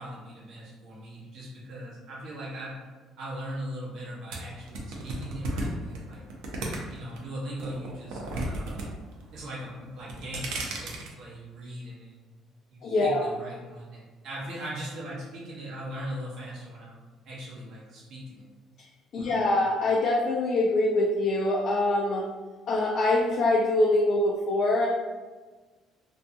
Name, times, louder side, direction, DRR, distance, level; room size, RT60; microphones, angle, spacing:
voice 1, 0.0-2.8 3.2-6.2 6.7-8.9 9.3-12.1 12.7-17.0 17.2-18.5 19.2-19.5, equal, 55° right, -6 dB, 0.9 m, -39 dB
sound 1, 4.3-7.2 7.6-8.9 9.1-9.6 10.0-11.1, right 2 dB, 90° right, 0.5 m, -34 dB
voice 2, 12.8-13.3 19.1-22.3 22.7-24.9, left 2 dB, 40° left, -2 dB, 0.3 m, -24 dB
2.6 x 2.2 x 2.6 m, 1.3 s
cardioid pair, 165°, 0 cm